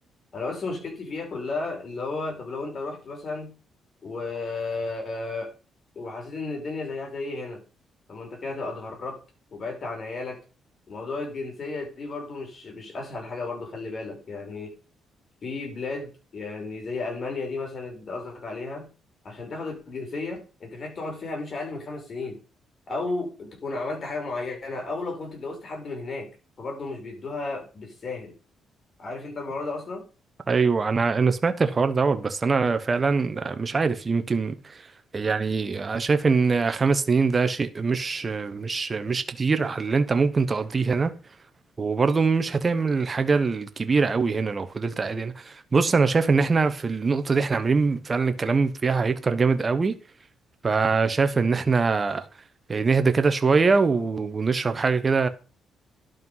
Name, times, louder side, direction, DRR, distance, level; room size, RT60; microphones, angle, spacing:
voice 1, 0.3-3.5 4.0-5.5 6.0-7.6 8.1-9.2 9.5-10.4 10.9-14.7 15.4-18.9 19.2-22.4 22.9-26.3 26.6-28.3 29.0-30.0, left 3 dB, 45° left, 5.2 m, -33 dB
voice 2, 30.5-34.6 35.1-41.1 41.8-50.0 50.6-52.3 52.7-55.3, right 4 dB, 30° right, 1.0 m, -23 dB
11.5 x 5.3 x 5.6 m
cardioid pair, 90°, 0 cm